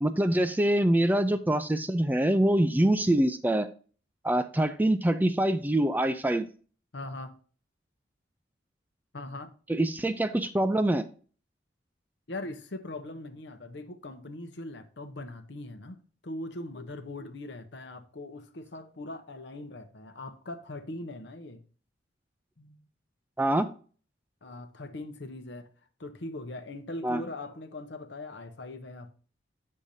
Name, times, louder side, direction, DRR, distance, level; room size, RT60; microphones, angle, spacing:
voice 1, 0.0-3.7 4.2-6.5 9.7-11.0 23.4-23.7 27.0-27.2, right 1 dB, 10° right, 0.4 m, -25 dB
voice 2, 6.9-7.3 9.1-9.5 12.3-16.0 16.2-21.6 22.6-22.9 24.4-25.7 26.0-29.1, left 2 dB, 70° left, 0.8 m, -40 dB
8.7 x 6.5 x 2.7 m
head